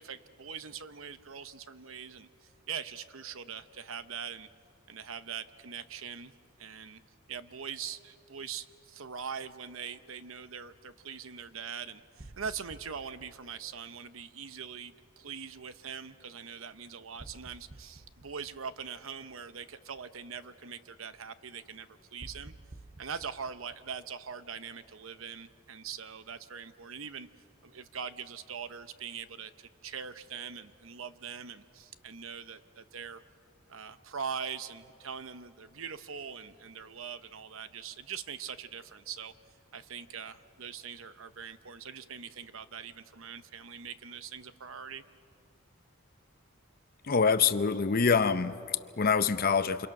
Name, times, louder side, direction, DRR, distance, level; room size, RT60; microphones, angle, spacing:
voice 1, 0.0-4.5 4.9-6.3 6.6-7.0 7.3-22.5 23.0-27.3 27.6-33.2 33.7-39.3 39.7-45.0, right 7 dB, 75° right, 12 dB, 0.9 m, -42 dB
sound 1, 12.2-14.3 17.2-19.2 22.2-24.7, right 2 dB, 40° right, 0.8 m, -52 dB
voice 2, 47.0-49.9, left 5 dB, 45° left, 12 dB, 0.7 m, -26 dB
28.5 x 27.5 x 6.0 m, 2.6 s
head